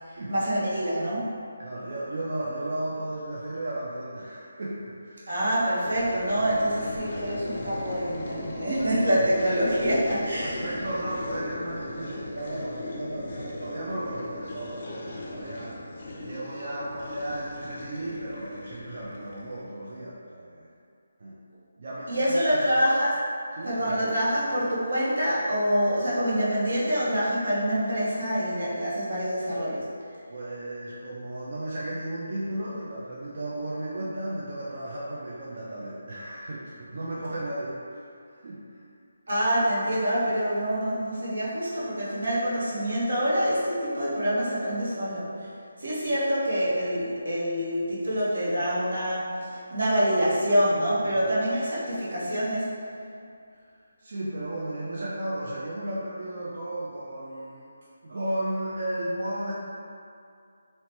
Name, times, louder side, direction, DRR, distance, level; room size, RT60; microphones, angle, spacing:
voice 1, 0.3-1.3 5.3-10.7 22.1-23.1 23.6-29.9 39.3-45.3 45.8-52.7, equal, 80° right, -8 dB, 0.9 m, -26 dB
voice 2, 1.6-5.3 8.8-8.9 9.2-9.3 10.4-20.7 21.2-21.4 21.8-22.9 23.6-24.0 30.3-38.8 46.1-46.2 51.0-51.2 53.5-53.6 54.0-57.7 58.0-59.5, right 1 dB, 50° right, -7 dB, 0.3 m, -34 dB
sound 1, 5.8-19.7, left 1 dB, 40° left, 0.4 m, -38 dB
2.7 x 2.1 x 3.0 m, 2.4 s
figure-of-eight pair, 170°, 0 cm